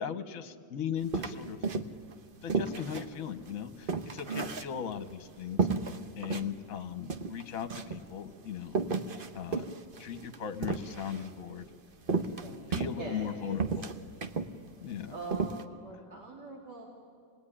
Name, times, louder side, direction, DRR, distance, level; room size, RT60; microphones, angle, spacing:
voice 1, 0.0-1.6 2.4-5.7 6.2-8.8 9.3-9.7 10.0-11.7 12.7-13.9 14.8-15.1, left 8 dB, 50° left, 9 dB, 1.5 m, -38 dB
sound 1, 1.1-2.1 2.5-5.1 5.6-6.5 6.8-6.9 7.1-8.0 8.7-11.3 12.1-13.3 13.6-14.5 14.9-15.0 15.3-15.6, right 4 dB, 40° right, 0.9 m, -33 dB
voice 2, 12.2-13.6 15.1-16.9, right 3 dB, 60° right, -2 dB, 3.2 m, -43 dB
26.5 x 19.5 x 10.0 m, 2.3 s
omnidirectional pair, 2.0 m